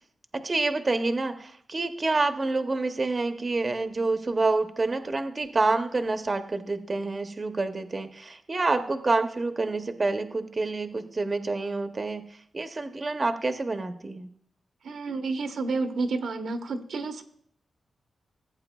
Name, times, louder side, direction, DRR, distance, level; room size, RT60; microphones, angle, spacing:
voice 1, 0.3-12.2 12.5-14.3, right 3 dB, 30° right, 8 dB, 0.7 m, -27 dB
voice 2, 14.8-17.2, right 3 dB, 85° right, 6 dB, 0.9 m, -30 dB
16.0 x 8.5 x 2.3 m, 0.66 s
wide cardioid pair, 120°, 0 cm